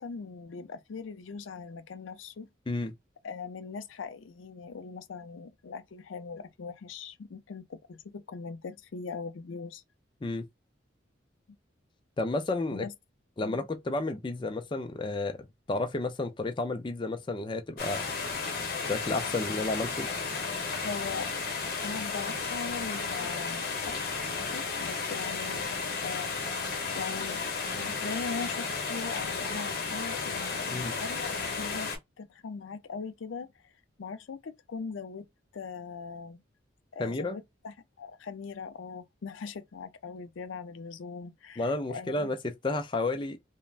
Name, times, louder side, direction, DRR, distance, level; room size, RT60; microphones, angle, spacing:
voice 1, 0.0-2.5 3.2-9.8 12.7-12.9 20.8-21.3 21.8-25.7 26.0-27.4 27.8-33.5 34.0-35.3 35.5-36.4 36.9-42.3, left 5 dB, 85° left, 0.4 m, -40 dB
voice 2, 12.2-12.9 13.4-18.3 18.8-20.1 30.7-30.9 37.0-37.4 41.6-43.4, left 2 dB, 25° left, 0.4 m, -32 dB
sound 1, 17.8-32.0, left 4 dB, 50° left, 0.8 m, -33 dB
3.2 x 2.1 x 2.4 m
head